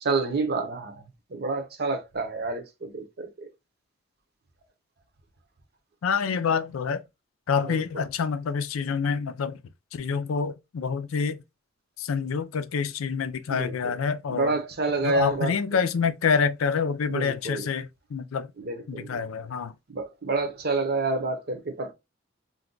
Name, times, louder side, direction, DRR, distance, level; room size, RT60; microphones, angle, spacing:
voice 1, 0.0-3.5 7.6-7.8 13.5-13.9 14.3-15.6 17.1-17.7 18.6-19.2 19.9-21.9, right 3 dB, 50° right, 0.7 m, -29 dB
voice 2, 6.0-7.0 7.5-9.6 9.9-11.4 12.0-14.5 15.0-18.5 18.9-19.7, left 6 dB, 90° left, 0.4 m, -27 dB
2.6 x 2.3 x 3.7 m
head